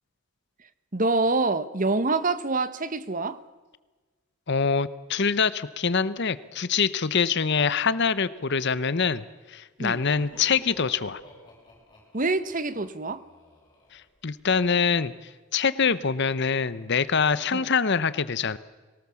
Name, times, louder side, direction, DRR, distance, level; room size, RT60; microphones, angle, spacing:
voice 1, 0.9-3.4 9.8-10.0 12.1-13.2 17.5-17.7, right 3 dB, 40° right, 1.1 m, -26 dB
voice 2, 4.5-11.2 13.9-18.6, left 5 dB, 55° left, 0.8 m, -25 dB
Laughter, 10.0-14.6, equal, 20° left, 7.7 m, -52 dB
23.0 x 18.5 x 7.1 m
head